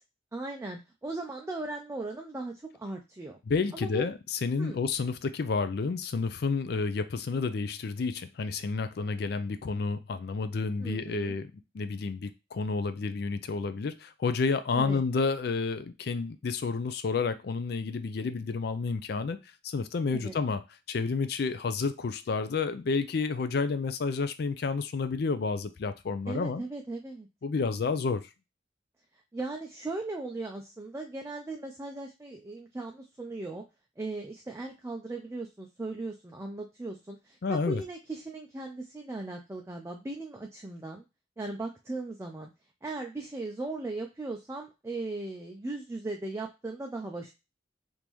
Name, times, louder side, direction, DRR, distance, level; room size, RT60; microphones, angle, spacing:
voice 1, 0.3-3.4 3.7-4.1 4.6-4.8 10.8-11.3 14.7-15.0 20.1-20.4 26.3-27.3 29.3-33.6 34.0-41.0 41.4-42.5 42.8-47.3, right 2 dB, 15° right, 0.4 m, -38 dB
voice 2, 3.5-19.4 19.6-20.6 20.9-26.6 27.4-28.2 37.4-37.8, left 4 dB, 60° left, 0.4 m, -30 dB
3.6 x 2.6 x 3.0 m
head